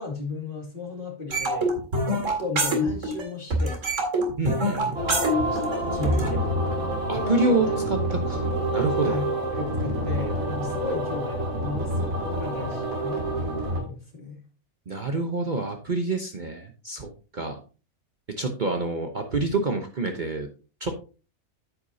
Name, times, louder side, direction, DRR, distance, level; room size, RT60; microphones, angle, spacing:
voice 1, 0.0-1.8 2.1-3.8 4.7-4.9 5.3-5.6 5.9-6.4 7.1-7.8 9.0-14.4, left 3 dB, 40° left, 0 dB, 2.6 m, -35 dB
sound 1, 1.3-3.3 3.5-6.3, right 1 dB, 65° right, 2.5 m, -25 dB
voice 2, 4.4-5.0 6.2-6.3 7.1-8.5 8.7-9.2 14.9-17.6 18.4-20.5 20.8-21.1, right 2 dB, 40° right, 4 dB, 1.0 m, -27 dB
sound 2, 4.9-13.8, right 1 dB, 85° right, 3.4 m, -28 dB
9.7 x 8.2 x 2.7 m, 0.34 s
omnidirectional pair, 1.4 m